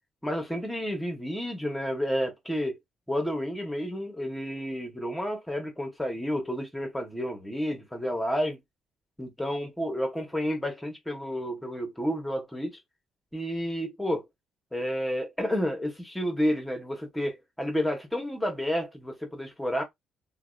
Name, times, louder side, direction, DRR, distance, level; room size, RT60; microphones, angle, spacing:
voice 1, 0.2-2.8 3.1-8.6 9.2-12.8 13.3-14.3 14.7-19.8, equal, 5° left, 0.9 m, -30 dB
2.6 x 2.1 x 2.3 m
cardioid pair, 90°, 0 cm